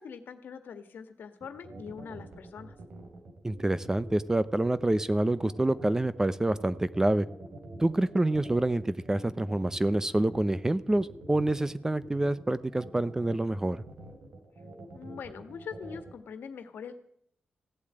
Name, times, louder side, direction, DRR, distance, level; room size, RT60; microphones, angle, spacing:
voice 1, 0.0-2.7 14.9-17.0, left 6 dB, 80° left, 10 dB, 1.5 m, -43 dB
sound 1, 1.4-16.1, right 2 dB, 65° right, 2.9 m, -46 dB
voice 2, 3.4-7.3 7.8-13.8, right 1 dB, 15° right, 16 dB, 0.6 m, -27 dB
16.0 x 8.4 x 8.8 m, 0.67 s
cardioid pair, 90°, 3 cm